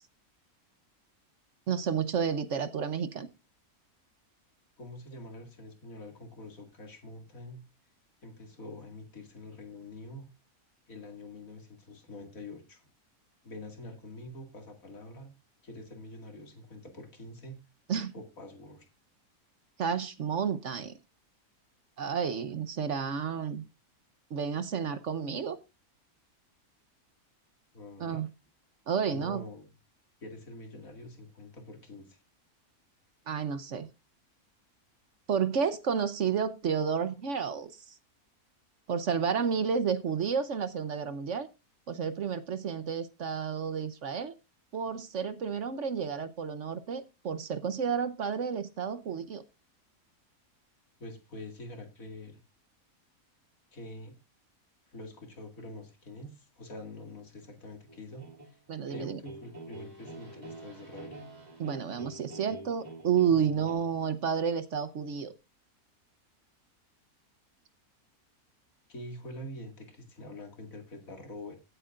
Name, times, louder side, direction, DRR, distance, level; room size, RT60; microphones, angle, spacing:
voice 1, 1.7-3.3 17.9-18.1 19.8-20.9 22.0-23.6 24.3-25.6 28.0-28.3 28.9-29.4 33.3-33.9 35.3-37.9 38.9-41.5 41.9-44.3 44.7-49.4 58.7-59.2 61.6-65.3, right 7 dB, 60° right, 12 dB, 1.1 m, -31 dB
voice 2, 4.8-7.6 8.2-10.3 10.9-12.8 13.4-15.3 15.6-17.6 18.1-18.9 27.7-28.2 29.1-29.7 30.2-32.2 51.0-52.4 53.7-54.1 54.9-58.6 58.9-61.2 63.2-63.9 68.9-71.5, left 1 dB, 65° left, 4 dB, 2.6 m, -45 dB
sound 1, 57.9-63.7, right 2 dB, 25° right, 2.8 m, -47 dB
16.0 x 8.3 x 2.5 m, 0.26 s
omnidirectional pair, 1.6 m